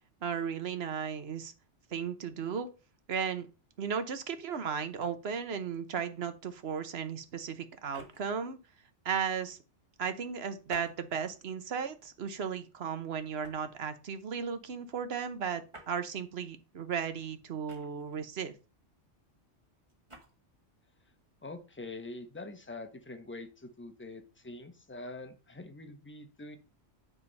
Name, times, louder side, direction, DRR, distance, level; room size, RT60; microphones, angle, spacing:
voice 1, 0.2-1.5 1.9-2.7 3.1-3.5 3.8-8.6 9.0-9.6 10.0-18.5, right 7 dB, 60° right, 10 dB, 1.1 m, -35 dB
sound 1, 7.8-8.4 10.6-11.4 12.0-12.3 13.4-13.8 15.7-16.0 17.7-18.2 19.9-20.3, left 1 dB, 25° right, 1.7 m, -50 dB
voice 2, 21.4-26.6, left 2 dB, 10° left, 7 dB, 0.8 m, -44 dB
9.5 x 3.7 x 5.4 m, 0.33 s
omnidirectional pair, 1.2 m